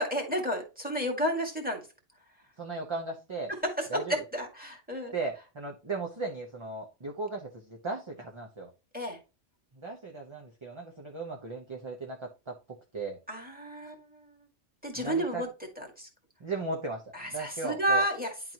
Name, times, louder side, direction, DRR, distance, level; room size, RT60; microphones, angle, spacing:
voice 1, 0.0-1.8 3.5-5.1 8.9-9.2 13.3-14.3 14.8-15.5 15.8-16.1 17.1-18.3, right 1 dB, 5° right, 1 dB, 1.9 m, -31 dB
voice 2, 2.6-3.5 3.9-4.2 5.1-8.7 9.7-12.6 12.9-13.2 15.0-15.4 16.4-18.0, right 3 dB, 25° right, 0 dB, 0.9 m, -37 dB
10.5 x 4.0 x 2.9 m, 0.30 s
omnidirectional pair, 1.3 m